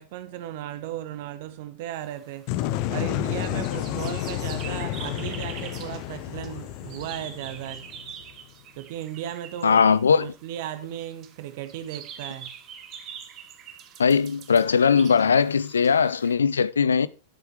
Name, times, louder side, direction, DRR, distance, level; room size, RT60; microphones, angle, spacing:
voice 1, 0.0-2.5 2.9-7.9 8.8-12.5, right 12 dB, 50° right, 1.4 m, -36 dB
sound 1, 2.0-16.3, right 8 dB, 35° right, 1.7 m, -45 dB
sound 2, 2.5-8.3, left 13 dB, 45° left, 0.8 m, -31 dB
voice 2, 9.6-10.3 14.0-17.1, left 6 dB, 70° left, 0.5 m, -20 dB
10.5 x 7.9 x 4.8 m
figure-of-eight pair, 90°, 0 cm